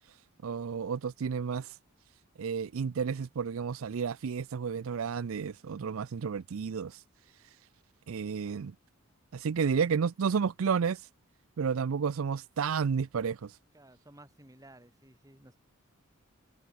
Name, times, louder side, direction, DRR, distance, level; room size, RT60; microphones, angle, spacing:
voice 1, 0.4-1.8 2.4-7.0 8.1-8.7 9.3-11.0 11.6-13.5, right 6 dB, 70° right, 0.4 m, -31 dB
voice 2, 13.7-15.6, right 1 dB, 15° right, 2.9 m, -55 dB
head